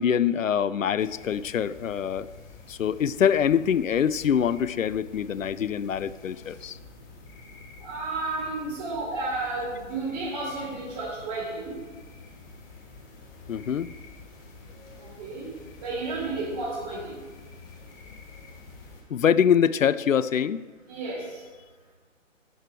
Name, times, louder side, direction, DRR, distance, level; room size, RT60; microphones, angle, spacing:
voice 1, 0.0-2.3 2.7-6.8 13.5-13.9 19.1-20.6, left 8 dB, 85° left, 17 dB, 0.6 m, -24 dB
sound 1, 1.0-19.0, left 3 dB, 15° left, 0.8 m, -48 dB
voice 2, 7.8-11.8 14.9-15.5 15.8-17.2 20.9-21.4, right 3 dB, 30° right, -12 dB, 3.6 m, -32 dB
12.0 x 6.3 x 4.6 m, 1.4 s
hypercardioid pair, 150°, 38 cm